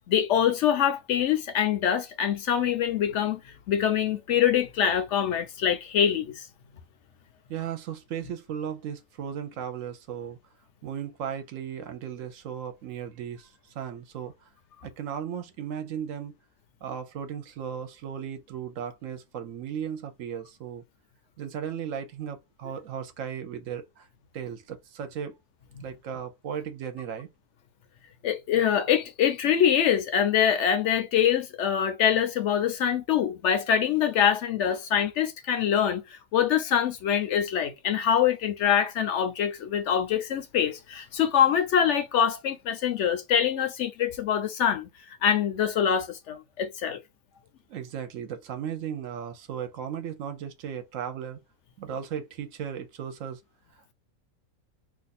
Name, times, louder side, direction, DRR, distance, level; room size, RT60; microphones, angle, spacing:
voice 1, 0.1-3.4 3.7-6.5 28.2-44.9 45.2-47.0, left 9 dB, 65° left, 0.8 m, -24 dB
voice 2, 7.5-10.4 10.8-14.5 14.8-16.4 16.8-20.8 21.4-24.1 24.3-25.3 25.8-27.3 47.7-51.4 51.8-53.4 53.8-53.9, right 8 dB, 70° right, 0.9 m, -36 dB
2.6 x 2.4 x 4.0 m
omnidirectional pair, 1.5 m